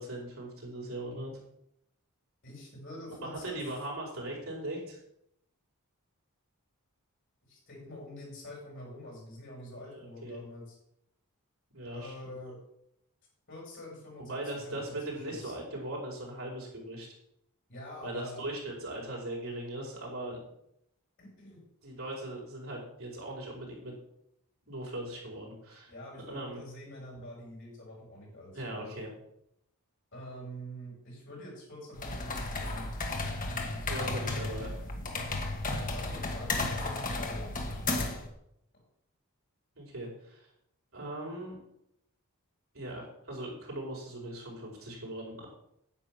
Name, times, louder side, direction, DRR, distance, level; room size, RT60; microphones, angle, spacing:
voice 1, 0.0-1.4 3.1-5.0 9.7-10.4 11.7-12.3 14.2-17.1 18.0-20.4 21.8-23.9 24.7-25.9 26.3-26.6 28.5-29.1 33.9-34.7 39.7-40.4 40.9-41.6 42.7-45.5, right 1 dB, 65° right, -3 dB, 5.0 m, -39 dB
voice 2, 2.4-3.6 7.5-10.8 11.9-12.6 13.5-14.4 14.6-15.5 17.7-18.4 21.2-21.6 25.9-29.0 30.1-32.9 33.5-33.9 35.9-38.2, equal, 55° left, -4 dB, 5.9 m, -46 dB
sound 1, 31.9-38.3, left 2 dB, 35° left, 1.7 m, -34 dB
9.9 x 8.5 x 6.2 m, 0.77 s
head